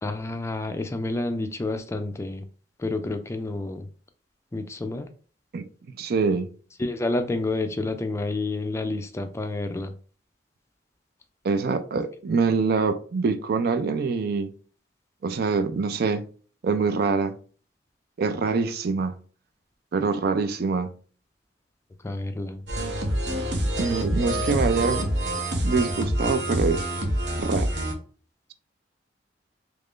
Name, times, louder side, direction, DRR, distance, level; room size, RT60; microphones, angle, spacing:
voice 1, 0.0-2.5 2.8-3.9 4.5-5.1 6.8-9.9 22.0-22.6, left 2 dB, 15° left, 0.3 m, -29 dB
voice 2, 6.0-6.5 11.4-14.5 15.2-16.3 16.6-17.4 18.2-19.1 19.9-20.9 23.8-25.0 25.6-26.9 27.4-27.8, right 4 dB, 60° right, 0.4 m, -25 dB
sound 1, 22.7-27.9, right 1 dB, 80° right, 0.8 m, -26 dB
3.2 x 2.5 x 3.6 m
head